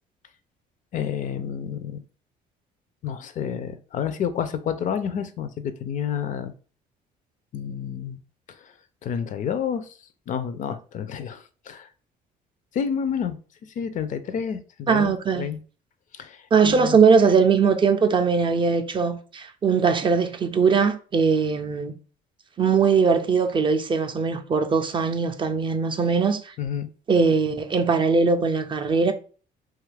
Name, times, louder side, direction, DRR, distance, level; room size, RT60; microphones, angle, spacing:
voice 1, 0.9-2.0 3.0-6.5 7.5-8.2 8.5-8.7 9.0-9.9 10.3-11.9 12.7-13.4 13.8-15.6 16.2-17.0 26.6-26.9, left 8 dB, 50° left, 0.4 m, -29 dB
voice 2, 14.9-15.5 16.5-22.0 22.6-26.5 27.1-29.1, right 5 dB, 30° right, 0.4 m, -20 dB
2.9 x 2.4 x 3.3 m
cardioid pair, 110°, 17 cm